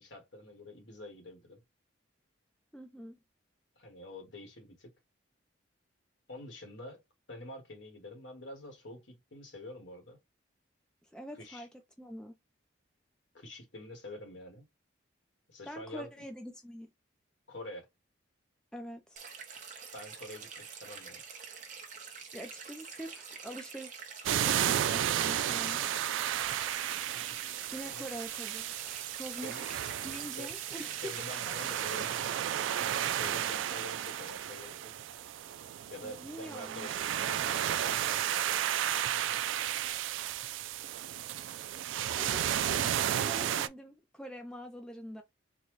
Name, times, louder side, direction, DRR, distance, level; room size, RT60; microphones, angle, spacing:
voice 1, 0.0-1.6 3.7-4.9 6.3-7.0 7.3-10.2 11.4-11.7 13.3-14.6 15.5-16.2 17.5-17.9 19.9-21.2 27.1-27.5 27.9-28.1 29.4-29.6 30.4-30.5 31.0-34.9 35.9-39.4, left 1 dB, 65° left, 1.3 m, -47 dB
voice 2, 2.7-3.2 11.0-11.7 12.0-12.3 15.7-16.9 18.7-19.3 22.3-23.9 24.3-25.8 27.7-28.8 29.1-31.0 36.0-36.9 42.2-42.9 43.2-45.2, equal, 5° left, 0.4 m, -45 dB
sound 1, 19.2-32.2, right 6 dB, 40° right, 0.9 m, -47 dB
sound 2, 24.2-43.7, right 11 dB, 75° right, 0.3 m, -33 dB
4.0 x 2.2 x 3.0 m
head